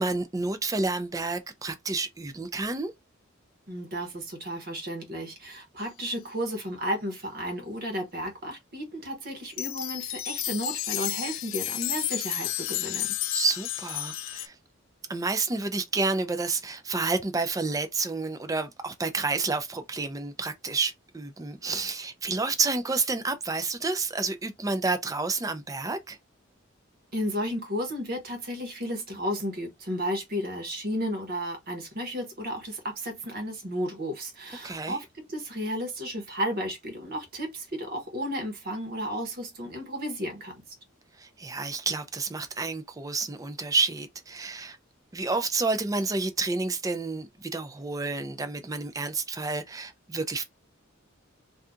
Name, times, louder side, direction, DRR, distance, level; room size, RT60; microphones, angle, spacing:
voice 1, 0.0-2.9 13.3-14.5 15.1-26.2 34.6-35.0 41.2-44.8 45.1-50.4, right 3 dB, 15° right, 0.4 m, -29 dB
voice 2, 3.7-13.1 27.1-40.6, equal, 50° right, 1.1 m, -33 dB
sound 1, 9.5-14.5, left 13 dB, 75° left, 0.4 m, -32 dB
2.7 x 2.4 x 3.5 m
head